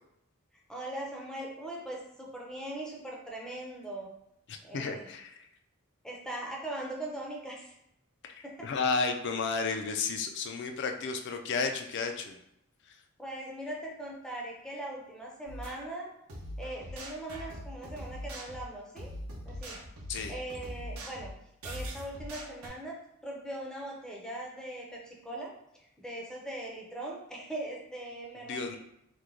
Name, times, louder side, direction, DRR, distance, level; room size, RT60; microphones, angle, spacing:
voice 1, 0.7-4.1 4.6-5.1 6.0-7.7 8.4-8.7 13.2-16.1 16.6-19.1 19.4-19.8 20.3-21.3 21.6-23.0 23.2-28.8, right 1 dB, 5° left, -2 dB, 0.5 m, -40 dB
voice 2, 4.5-5.4 8.2-12.4 12.9-13.0 20.1-20.3 28.5-28.8, left 4 dB, 55° left, 5 dB, 0.4 m, -32 dB
sound 1, 15.5-15.8 16.3-22.7, equal, 75° right, 0.8 m, -42 dB
3.0 x 2.1 x 3.6 m, 0.78 s
head